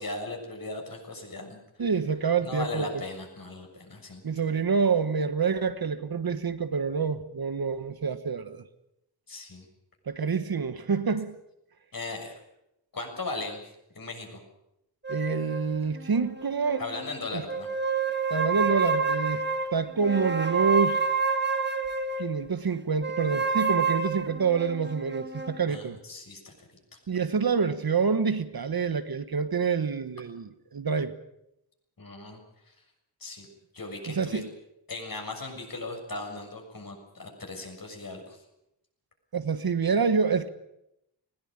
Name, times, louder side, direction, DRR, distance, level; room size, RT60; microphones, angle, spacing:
voice 1, 0.0-1.6 2.4-4.2 9.3-9.7 11.9-12.3 12.9-13.6 13.9-14.4 16.8-17.7 25.7-26.5 32.0-32.4 32.7-32.8 33.2-33.5 33.7-34.5 34.9-38.4, left 2 dB, 50° left, 6.9 m, -37 dB
voice 2, 1.8-3.0 4.2-8.6 10.1-11.3 15.1-16.8 17.3-17.4 18.3-19.4 19.7-21.1 22.2-26.0 27.1-31.2 34.1-34.5 39.3-40.5, right 5 dB, 55° right, 1.4 m, -27 dB
sound 1, 15.0-17.1 17.5-22.3 23.0-25.6, right 4 dB, 25° right, 1.7 m, -29 dB
20.0 x 18.5 x 9.0 m
wide cardioid pair, 95°, 43 cm